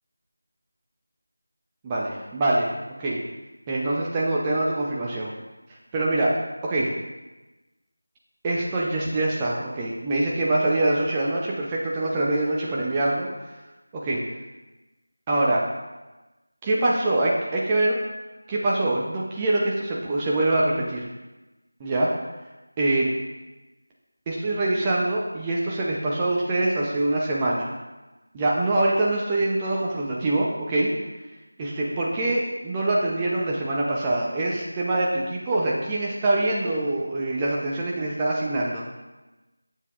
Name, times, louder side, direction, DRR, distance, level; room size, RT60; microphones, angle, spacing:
voice 1, 1.8-2.7 3.0-3.2 3.7-5.3 5.9-6.3 6.6-6.9 8.4-13.3 13.9-14.2 15.3-15.6 16.6-17.9 18.5-21.1 21.8-22.1 22.8-23.1 24.3-27.7 28.3-30.9 31.6-38.8, right 2 dB, 10° right, -4 dB, 0.5 m, -24 dB
8.0 x 7.0 x 2.4 m, 1.1 s
figure-of-eight pair, 170°, 0 cm